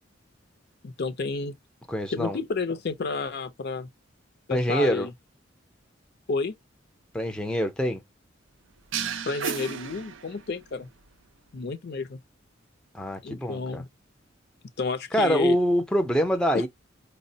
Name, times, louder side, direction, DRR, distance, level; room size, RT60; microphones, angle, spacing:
voice 1, 0.8-1.5 2.1-3.9 4.5-5.1 6.3-6.6 9.3-10.9 11.5-12.2 13.2-13.9 14.8-15.6 16.5-16.7, left 4 dB, 55° left, 0.5 m, -30 dB
voice 2, 1.9-2.4 4.5-5.1 7.1-8.0 12.9-13.8 15.1-16.7, equal, 5° left, 0.4 m, -25 dB
sound 1, 8.9-10.7, right 7 dB, 70° right, 0.5 m, -33 dB
4.5 x 2.1 x 2.6 m
head